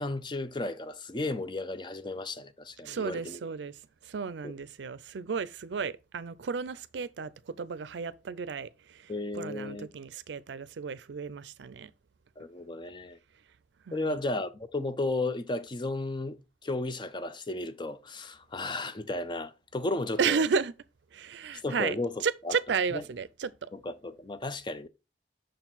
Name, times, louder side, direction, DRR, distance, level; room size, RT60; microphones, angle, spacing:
voice 1, 0.0-3.4 4.4-4.5 9.1-9.9 12.4-13.2 13.9-20.4 21.6-22.5 22.9-23.0 23.7-24.9, left 2 dB, 25° left, 0.5 m, -34 dB
voice 2, 2.8-11.9 13.9-14.2 20.2-20.7 21.1-23.7, right 5 dB, 80° right, 0.5 m, -33 dB
6.4 x 4.5 x 3.9 m
head